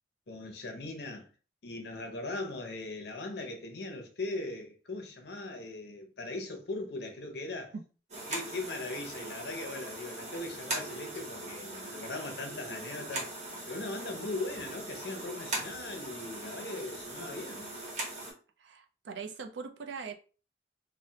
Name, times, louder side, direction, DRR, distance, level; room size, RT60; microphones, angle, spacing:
voice 1, 0.3-1.3 1.6-7.7 8.3-13.3 13.7-17.7, left 2 dB, 65° left, 0.7 m, -39 dB
sound 1, 8.1-18.3, right 2 dB, 40° right, 1.0 m, -40 dB
voice 2, 18.6-20.1, right 5 dB, 85° right, 0.4 m, -41 dB
3.2 x 2.1 x 2.7 m
head